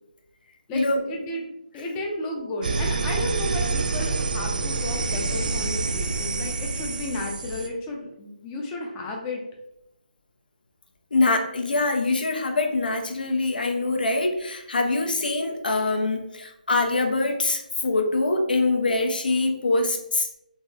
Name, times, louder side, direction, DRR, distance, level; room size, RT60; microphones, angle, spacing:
voice 1, 0.7-9.4, left 2 dB, 15° left, 0 dB, 0.4 m, -33 dB
sound 1, 2.6-7.7, right 4 dB, 65° right, 0.3 m, -27 dB
voice 2, 11.1-20.3, left 2 dB, 75° left, 4 dB, 0.6 m, -24 dB
3.5 x 2.1 x 2.6 m, 0.83 s
hypercardioid pair, 160°, 5 cm